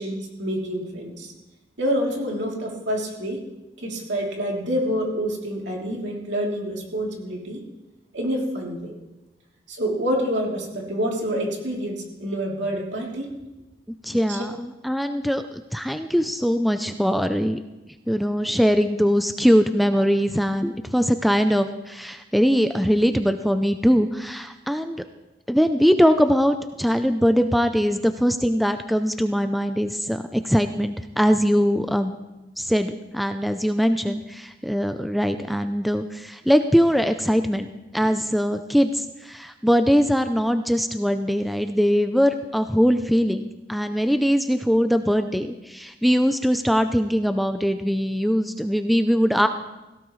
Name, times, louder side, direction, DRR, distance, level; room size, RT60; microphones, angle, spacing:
voice 1, 0.0-1.3 1.8-3.4 3.8-7.6 8.1-8.9 9.7-13.3 14.3-14.4, equal, 70° right, -2 dB, 3.1 m, -27 dB
voice 2, 14.0-15.4 15.7-17.6 18.1-25.0 25.5-32.2 32.6-49.5, equal, ahead, 8 dB, 0.4 m, -21 dB
17.0 x 17.0 x 3.1 m, 1.0 s
head